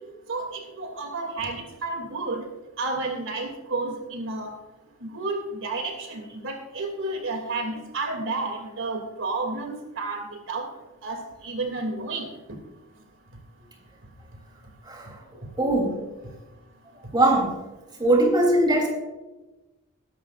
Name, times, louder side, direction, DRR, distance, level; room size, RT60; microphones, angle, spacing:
voice 1, 0.3-2.4 2.8-4.5 5.0-10.7 11.0-12.3, right 3 dB, 60° right, 3 dB, 2.7 m, -31 dB
voice 2, 15.6-16.0 17.1-17.5 18.0-18.9, right 1 dB, 20° right, 0 dB, 3.3 m, -20 dB
21.0 x 11.0 x 2.5 m, 1.1 s
head